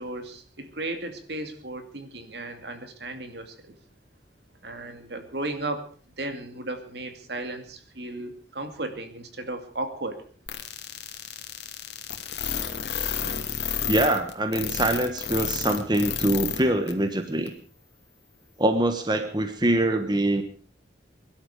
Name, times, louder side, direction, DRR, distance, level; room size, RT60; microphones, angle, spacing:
voice 1, 0.0-3.8 4.6-5.9 6.2-10.2, right 2 dB, 65° right, 7 dB, 2.4 m, -35 dB
sound 1, 10.5-16.6 16.9-17.0 17.5-17.6, left 8 dB, 65° left, 2.4 m, -30 dB
voice 2, 13.9-17.5 18.6-20.4, right 1 dB, 25° right, 7 dB, 1.2 m, -24 dB
23.5 x 11.5 x 4.9 m, 0.42 s
head